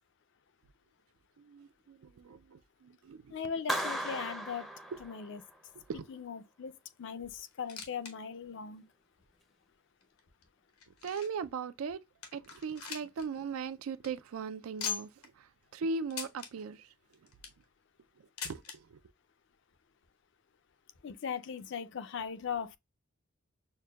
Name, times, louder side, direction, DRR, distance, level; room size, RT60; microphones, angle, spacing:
voice 1, 1.4-3.4 5.9-6.0 11.0-12.0 12.3-15.1 15.4-16.9 18.4-19.0, right 5 dB, 75° right, 0.4 m, -39 dB
voice 2, 3.3-4.7 5.0-5.4 6.1-8.8 21.0-22.8, left 6 dB, 55° left, 0.4 m, -39 dB
Clapping, 3.7-5.6, equal, ahead, 0.5 m, -36 dB
sound 1, 7.5-8.1 8.4-8.5 9.2-9.3 10.0-11.5 11.9-12.0 12.2-13.3 13.6-13.7 13.9-14.1 14.8-15.3 16.1-16.5 17.1-17.6 18.4-18.8 19.7-19.8 20.0-20.1 20.9-21.0, left 7 dB, 85° left, 1.0 m, -41 dB
6.5 x 2.2 x 2.2 m
head